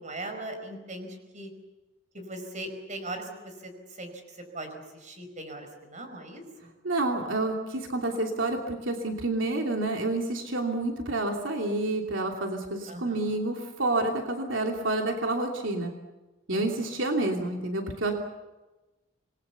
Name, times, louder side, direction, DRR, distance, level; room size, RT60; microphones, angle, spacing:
voice 1, 0.0-1.1 1.3-1.5 2.1-3.7 4.0-4.1 4.5-6.7 12.9-13.2 16.5-16.6, right 1 dB, 40° right, 6 dB, 5.1 m, -39 dB
voice 2, 6.8-15.9 16.5-18.1, right 2 dB, 80° right, 2 dB, 2.9 m, -29 dB
27.5 x 21.5 x 7.0 m, 1.1 s
head